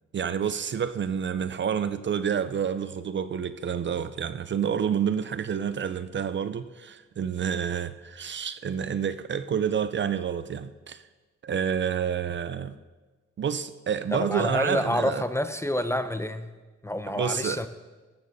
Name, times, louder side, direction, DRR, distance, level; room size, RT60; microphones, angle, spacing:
voice 1, 0.1-11.0 11.4-12.8 13.4-15.2 17.1-17.6, right 7 dB, 40° right, 0.5 m, -29 dB
voice 2, 14.1-16.5 16.8-17.7, left 1 dB, 10° left, 0.5 m, -28 dB
15.0 x 13.5 x 2.7 m
cardioid pair, 90°, 30 cm